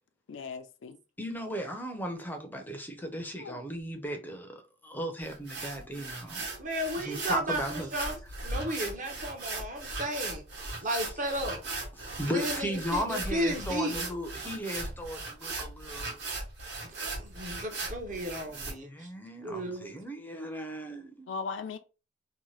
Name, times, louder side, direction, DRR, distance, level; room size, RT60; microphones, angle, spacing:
voice 1, 0.3-1.0 3.4-3.6 5.8-6.0 21.3-21.8, left 5 dB, 75° left, 0.4 m, -38 dB
voice 2, 1.2-6.5 7.0-7.9 8.5-8.9 12.0-16.2 18.8-21.3, equal, 10° left, 0.5 m, -36 dB
sound 1, 5.2-18.7, right 3 dB, 60° right, 1.0 m, -38 dB
voice 3, 6.6-10.4 10.8-11.6 12.3-14.0 16.9-19.1 19.4-19.9, right 1 dB, 40° right, 0.7 m, -34 dB
2.7 x 2.2 x 3.1 m
head